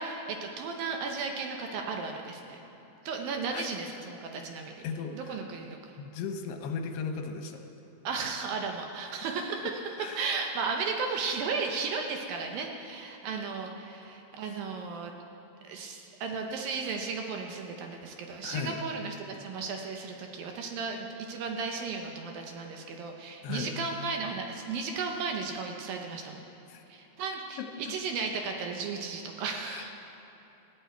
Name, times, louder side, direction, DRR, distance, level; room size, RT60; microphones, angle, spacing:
voice 1, 0.0-2.6 3.1-4.8 5.1-6.0 8.0-9.8 10.2-15.1 15.6-26.5 26.9-29.9, right 4 dB, 70° right, 2 dB, 2.5 m, -35 dB
voice 2, 4.8-5.4 6.0-7.6 10.0-10.2 14.5-14.6 18.4-18.8 23.4-23.7 26.7-26.8 29.7-29.9, left 5 dB, 80° left, 5 dB, 3.0 m, -36 dB
19.5 x 14.5 x 4.6 m, 3.0 s
omnidirectional pair, 4.8 m